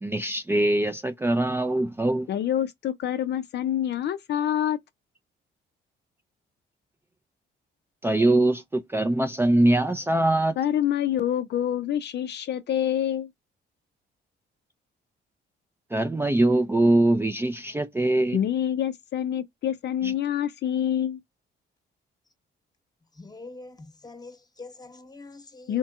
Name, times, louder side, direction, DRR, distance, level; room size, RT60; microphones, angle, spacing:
voice 1, 0.0-2.3 8.0-10.5 15.9-18.4 20.0-20.1, right 1 dB, 10° right, 0.4 m, -22 dB
voice 2, 2.3-4.8 10.6-13.3 18.3-21.2 25.7-25.8, left 10 dB, 60° left, 0.5 m, -26 dB
voice 3, 23.2-25.8, left 3 dB, 20° left, 1.0 m, -44 dB
4.3 x 2.8 x 2.3 m
cardioid pair, 90°, 20 cm